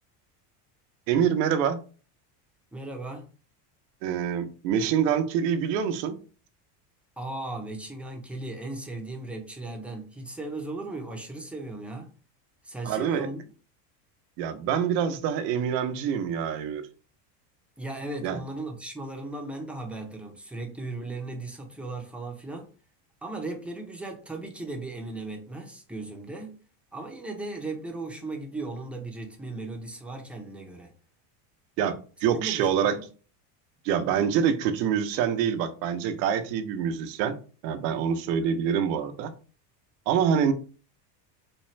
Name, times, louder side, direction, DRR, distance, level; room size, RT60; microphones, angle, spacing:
voice 1, 1.1-1.8 4.0-6.2 12.8-13.3 14.4-16.8 18.2-18.4 31.8-31.9 32.2-33.0 33.8-37.4 37.6-39.3 40.1-40.5, right 8 dB, 80° right, 0.8 m, -25 dB
voice 2, 2.7-3.3 7.2-12.1 12.6-13.4 17.8-22.7 23.2-26.5 26.9-30.9 32.3-33.0, right 2 dB, 5° right, 0.6 m, -37 dB
4.3 x 2.3 x 3.1 m
supercardioid pair, 120°, 49 cm